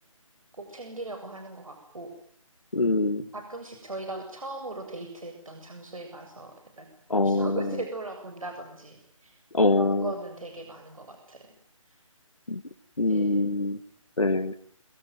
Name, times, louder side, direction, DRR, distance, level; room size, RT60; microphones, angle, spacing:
voice 1, 0.6-2.1 3.3-6.9 7.2-9.4 9.7-11.5 13.1-13.5, right 2 dB, 75° right, 5 dB, 7.2 m, -39 dB
voice 2, 2.7-3.2 7.1-7.7 9.5-10.1 12.5-12.6 13.0-13.8 14.2-14.5, left 2 dB, 80° left, 8 dB, 2.0 m, -24 dB
27.0 x 23.0 x 9.4 m, 0.62 s
figure-of-eight pair, 150°, 17 cm